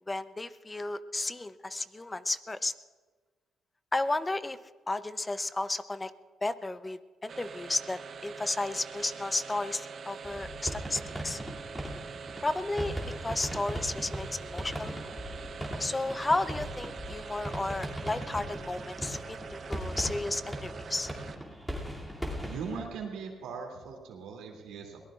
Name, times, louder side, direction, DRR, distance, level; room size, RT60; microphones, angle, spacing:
voice 1, 0.1-2.7 3.9-4.6 4.9-6.1 6.4-11.4 12.4-15.1 15.8-21.1, left 2 dB, 20° left, 13 dB, 0.6 m, -33 dB
sound 1, 7.3-21.6, right 5 dB, 50° right, 0.9 m, -44 dB
sound 2, 10.2-22.8, equal, ahead, 2.7 m, -39 dB
voice 2, 22.4-25.0, right 5 dB, 90° right, 1 dB, 2.7 m, -40 dB
22.5 x 18.5 x 2.5 m, 1.4 s
cardioid pair, 90°, 0 cm